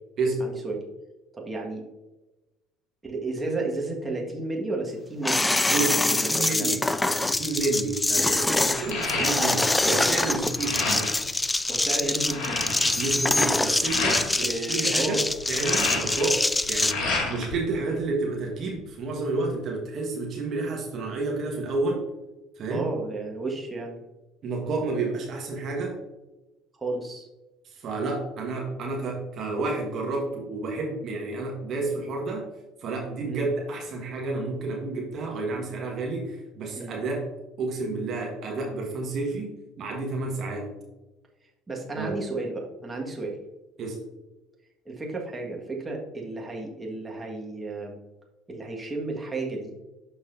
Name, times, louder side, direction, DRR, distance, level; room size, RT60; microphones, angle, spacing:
voice 1, 0.4-0.8 1.3-1.8 3.0-6.8 8.5-8.7 11.7-12.6 13.6-14.1 14.4-15.2 22.7-24.0 26.8-27.3 33.2-33.4 36.7-36.9 41.7-43.4 44.8-48.0 48.5-49.7, right 2 dB, 20° right, -1 dB, 1.6 m, -33 dB
sound 1, 5.2-16.9, left 2 dB, 15° left, 0.3 m, -25 dB
voice 2, 5.7-11.1 13.0-15.2 15.5-16.4 16.7-22.0 22.6-22.8 24.4-26.0 27.6-32.5 32.8-37.3 37.6-40.7 42.0-42.2 43.8-44.0, right 3 dB, 50° right, -1 dB, 1.4 m, -30 dB
sound 2, 7.3-7.6 8.0-9.8 10.1-11.3 11.7-11.8 12.0-14.3 15.3-17.5 17.9-18.8, left 3 dB, 55° left, 2.2 m, -30 dB
12.0 x 4.0 x 2.6 m, 1.1 s
hypercardioid pair, 60°, 0 cm